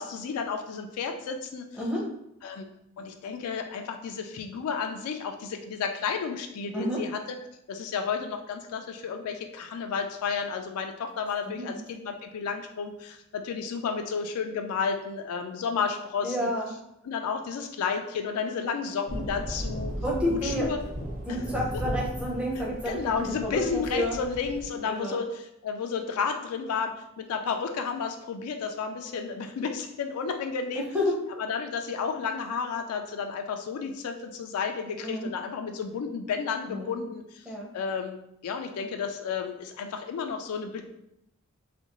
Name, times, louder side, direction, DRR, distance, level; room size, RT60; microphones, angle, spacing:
voice 1, 0.0-1.7 2.4-2.7 3.0-7.2 7.7-16.5 17.0-19.9 20.3-20.8 21.3-21.4 22.9-30.9 31.4-37.4 37.7-38.2 38.4-40.8, left 5 dB, 80° left, 5 dB, 0.3 m, -32 dB
voice 2, 1.8-2.1 6.7-7.0 11.5-11.8 16.2-16.7 20.0-20.7 21.3-24.2 24.9-25.2 30.7-31.2 35.0-35.3 36.7-36.9 37.4-37.7, equal, 5° right, -3 dB, 0.6 m, -30 dB
sound 1, 19.1-24.7, equal, 40° right, 1.0 m, -36 dB
2.7 x 2.5 x 2.9 m, 0.80 s
head